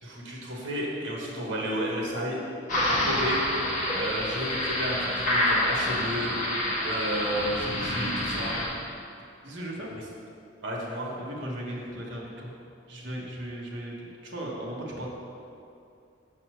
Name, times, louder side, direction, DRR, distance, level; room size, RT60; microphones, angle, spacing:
voice 1, 0.0-2.4 3.0-3.4 4.0-6.3 6.8-8.6 9.9-10.0 10.6-11.2, right 1 dB, 85° right, -3 dB, 1.6 m, -32 dB
sound 1, 2.7-8.7, left 1 dB, 40° left, 1.6 m, -27 dB
voice 2, 9.4-9.9 11.1-12.5 12.9-15.1, right 1 dB, 70° right, -2 dB, 1.3 m, -37 dB
6.5 x 4.3 x 6.4 m, 2.6 s
head